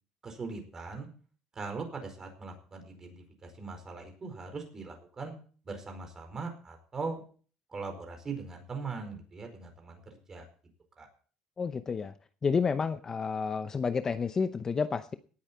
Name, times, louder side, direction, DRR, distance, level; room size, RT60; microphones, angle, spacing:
voice 1, 0.2-1.1 1.5-3.2 3.4-5.3 5.6-7.2 7.7-10.0 10.3-10.4 11.0-11.1, right 4 dB, 25° right, 5 dB, 4.7 m, -40 dB
voice 2, 11.6-12.1 12.4-15.1, left 5 dB, 25° left, 11 dB, 0.7 m, -30 dB
18.5 x 8.8 x 4.4 m, 0.41 s
cardioid pair, 130°, 2 cm